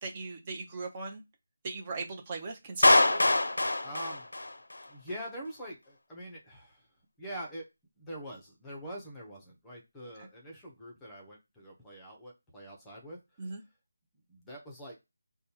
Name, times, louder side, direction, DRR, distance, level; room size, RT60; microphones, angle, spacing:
voice 1, 0.0-1.2 1.6-3.2 13.4-13.6, right 3 dB, 25° right, 1 dB, 0.8 m, -38 dB
Clapping, 2.8-4.9, left 2 dB, 85° left, 0.5 m, -24 dB
voice 2, 3.8-4.3 4.9-6.9 7.2-7.7 8.0-13.2 13.5-13.6 14.3-15.0, right 1 dB, 5° left, -2 dB, 0.8 m, -44 dB
5.0 x 2.3 x 2.9 m, 0.24 s
figure-of-eight pair, 170°, 0 cm